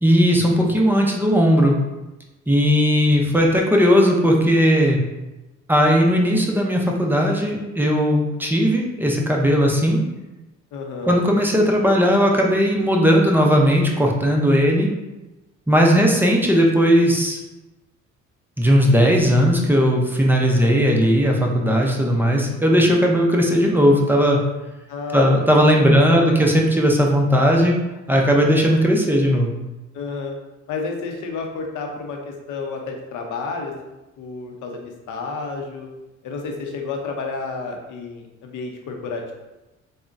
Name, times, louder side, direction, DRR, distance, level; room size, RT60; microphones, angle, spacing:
voice 1, 0.0-1.8 2.5-5.0 5.7-10.0 11.1-14.9 15.7-17.4 18.6-24.4 25.1-27.7 28.1-29.5, equal, 5° right, -1 dB, 0.4 m, -17 dB
voice 2, 10.7-11.2 20.5-21.2 24.9-26.4 29.9-30.4 30.7-33.7 34.2-35.9 36.2-39.3, left 4 dB, 80° left, 2 dB, 0.6 m, -31 dB
3.6 x 2.1 x 2.5 m, 1.0 s
cardioid pair, 90°, 30 cm